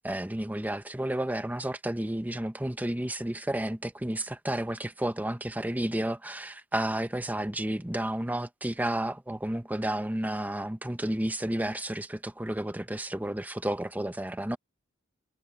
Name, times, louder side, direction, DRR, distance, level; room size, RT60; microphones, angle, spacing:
voice 1, 0.0-14.6, right 1 dB, 10° right, 0.8 m, -31 dB
head